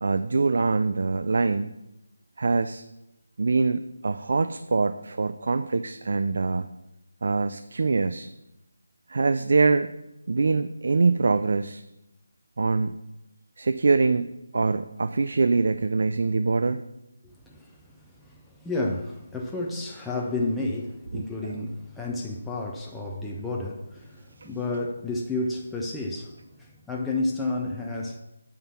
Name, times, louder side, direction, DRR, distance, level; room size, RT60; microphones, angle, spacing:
voice 1, 0.0-1.7 2.4-2.8 3.4-6.7 7.2-8.3 9.1-9.9 10.3-11.8 12.6-13.0 13.6-16.8 21.1-21.2, right 4 dB, 55° right, 10 dB, 0.4 m, -24 dB
voice 2, 17.2-17.8 18.3-28.2, left 2 dB, 5° left, -2 dB, 0.5 m, -31 dB
10.0 x 3.7 x 6.9 m, 0.91 s
figure-of-eight pair, 170°, 0 cm